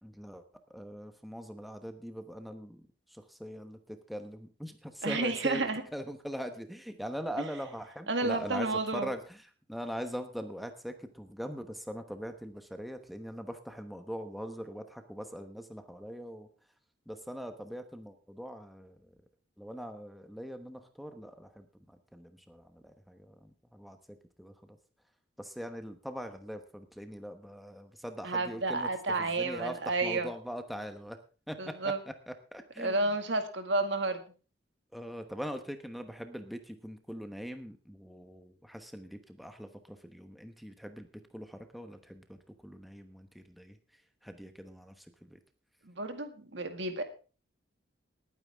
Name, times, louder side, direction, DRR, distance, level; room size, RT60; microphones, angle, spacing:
voice 1, 0.0-0.4 0.7-16.5 17.1-19.0 19.6-24.8 25.4-28.9 29.2-31.2 31.5-31.9 32.3-33.0 34.9-41.1 41.3-43.8 44.2-45.4, equal, ahead, 7 dB, 1.0 m, -42 dB
voice 2, 5.0-5.8 8.1-9.1 28.2-30.3 31.6-32.0 32.8-34.2 45.9-47.0, right 2 dB, 75° right, 7 dB, 2.0 m, -31 dB
20.0 x 9.3 x 3.5 m, 0.36 s
head